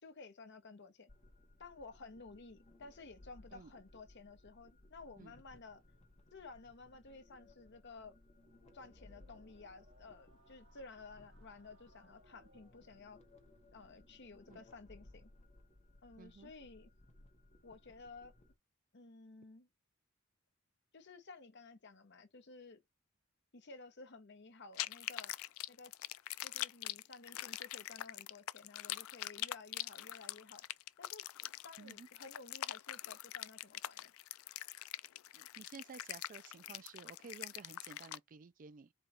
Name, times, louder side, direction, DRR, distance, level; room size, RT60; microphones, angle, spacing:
voice 1, 0.0-1.1 1.6-5.8 6.3-8.2 8.7-13.2 13.7-15.3 16.0-16.9 17.6-18.3 18.9-19.7 20.9-22.8 23.5-25.3 25.7-25.9 26.4-30.6 31.0-31.2 31.6-34.1, left 3 dB, 55° left, 1.0 m, -54 dB
sound 1, 1.1-18.5, left 1 dB, 35° left, 1.0 m, -63 dB
sound 2, 8.4-14.3, equal, 60° right, 1.8 m, -69 dB
voice 2, 16.2-16.5 31.8-32.1 35.3-38.9, right 5 dB, 40° right, 0.4 m, -53 dB
sound 3, 24.8-38.2, left 14 dB, 85° left, 0.4 m, -43 dB
4.5 x 2.4 x 4.3 m
head